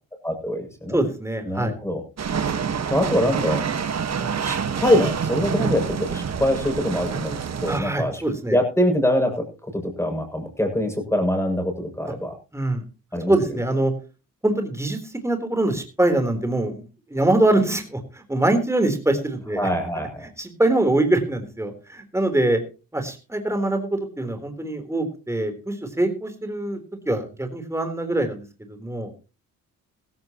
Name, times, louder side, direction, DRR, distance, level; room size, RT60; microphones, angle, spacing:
voice 1, 0.2-1.0 1.4-2.0 2.9-3.6 4.4-8.2 8.5-9.4 9.7-12.3 13.1-13.3 19.6-20.3, left 1 dB, 5° left, 5 dB, 7.3 m, -23 dB
voice 2, 0.9-1.8 4.2-4.3 7.7-8.6 12.5-12.8 13.3-13.9 14.4-19.7 20.4-22.6 22.9-26.8 27.1-29.1, right 2 dB, 10° right, 7 dB, 3.7 m, -23 dB
sound 1, 2.2-7.8, right 6 dB, 45° right, 1.6 m, -27 dB
16.0 x 15.5 x 3.0 m, 0.33 s
supercardioid pair, 65°, 35 cm